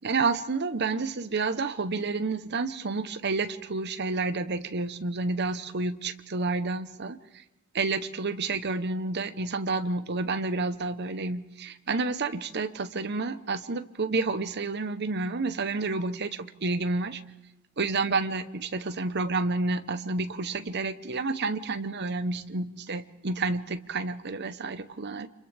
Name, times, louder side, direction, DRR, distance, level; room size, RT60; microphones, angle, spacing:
voice 1, 0.0-7.2 7.7-17.2 17.8-25.3, right 3 dB, 55° right, 11 dB, 1.0 m, -30 dB
30.0 x 26.5 x 3.5 m, 1.0 s
head